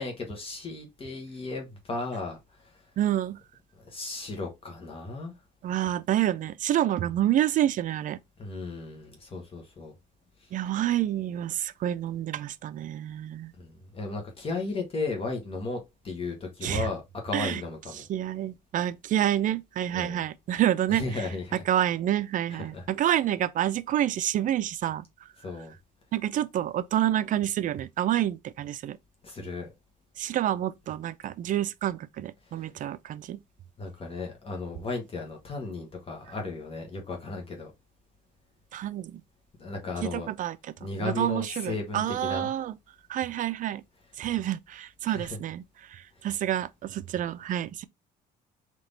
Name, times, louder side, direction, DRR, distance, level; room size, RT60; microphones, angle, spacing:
voice 1, 0.0-2.8 3.8-5.3 8.4-9.9 10.4-10.5 13.6-18.0 19.9-20.2 20.9-21.6 22.5-22.8 25.4-25.7 29.2-29.7 32.4-32.7 33.8-37.7 39.6-40.3 40.8-42.5 45.0-45.4 46.2-46.3, left 3 dB, 35° left, 1.2 m, -35 dB
voice 2, 3.0-3.4 5.6-8.2 10.5-13.5 16.6-16.9 17.3-17.6 18.0-21.0 21.7-25.1 26.1-29.0 30.2-33.4 38.7-39.2 40.0-40.6 41.0-42.8 43.1-43.8 44.2-45.6 45.9-47.8, right 12 dB, 50° right, 0.4 m, -28 dB
3.5 x 2.9 x 3.9 m
cardioid pair, 110°, 17 cm